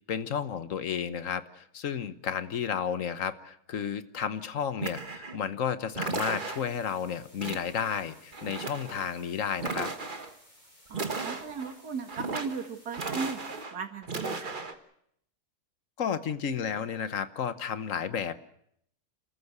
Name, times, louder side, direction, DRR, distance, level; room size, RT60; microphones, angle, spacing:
voice 1, 0.1-9.9 16.0-18.3, left 7 dB, 60° left, 13 dB, 1.4 m, -32 dB
sound 1, 4.8-5.4 5.9-6.8 7.4-8.0 8.3-9.1 9.6-10.3 10.9-11.7 12.1-12.7 12.9-13.7 14.0-14.7, right 4 dB, 35° right, 1.5 m, -35 dB
sound 2, 6.0-13.6, equal, 20° left, 7.5 m, -58 dB
voice 2, 10.9-13.4 13.7-14.7, right 5 dB, 75° right, 7 dB, 2.4 m, -37 dB
29.0 x 14.0 x 8.0 m, 0.71 s
omnidirectional pair, 1.7 m